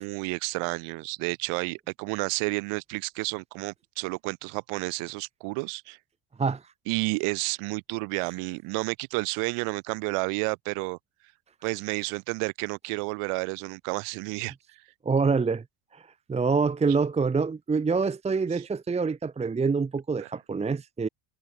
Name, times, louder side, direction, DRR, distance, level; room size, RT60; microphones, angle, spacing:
voice 1, 0.0-6.0 6.9-11.0 11.6-14.5 18.5-18.6 20.2-20.3, right 29 dB, 85° right, 4.0 m, -31 dB
voice 2, 15.0-15.6 15.9-21.1, right 4 dB, 15° right, 1.1 m, -26 dB
cardioid pair, 170°, 50 cm